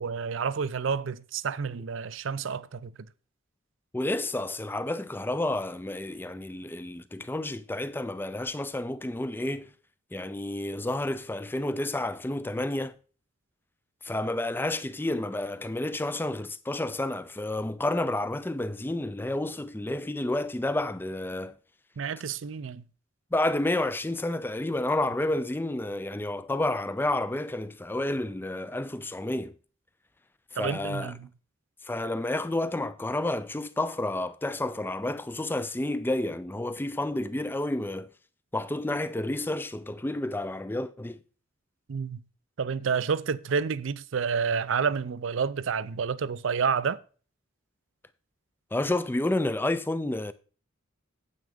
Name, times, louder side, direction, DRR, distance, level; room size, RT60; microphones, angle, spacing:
voice 1, 0.0-2.9 22.0-22.8 30.6-31.3 41.9-42.2 42.6-47.0, right 6 dB, 70° right, 0.5 m, -29 dB
voice 2, 3.9-9.7 10.1-13.0 14.0-21.6 23.3-29.5 30.5-31.1 31.8-38.1 38.5-41.2 48.7-50.3, left 1 dB, 10° left, 0.4 m, -30 dB
9.3 x 8.1 x 3.6 m
head